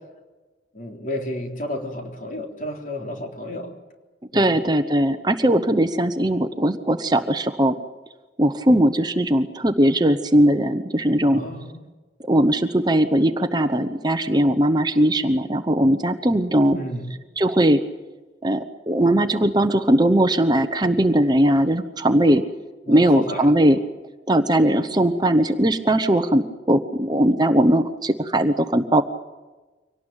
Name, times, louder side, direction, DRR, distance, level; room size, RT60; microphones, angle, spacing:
voice 1, 0.7-3.7 4.3-4.7 11.3-11.8 16.7-17.1 22.9-23.5, left 1 dB, 45° left, 3 dB, 3.8 m, -32 dB
voice 2, 4.3-7.7 8.4-11.4 12.3-16.8 17.4-17.8 18.4-22.4 22.9-23.8 24.3-29.0, right 1 dB, 20° right, 8 dB, 1.0 m, -19 dB
25.0 x 18.5 x 9.0 m, 1.2 s
head